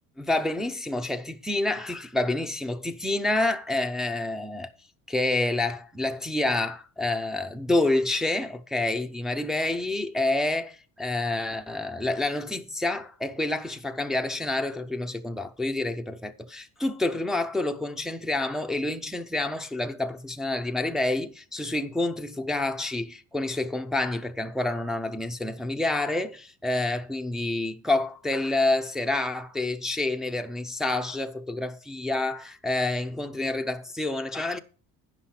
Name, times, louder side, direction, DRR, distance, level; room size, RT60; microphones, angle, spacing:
voice 1, 0.2-4.7 5.1-34.6, left 2 dB, ahead, 0.5 m, -28 dB
9.6 x 5.9 x 5.7 m
cardioid pair, 115°, 34 cm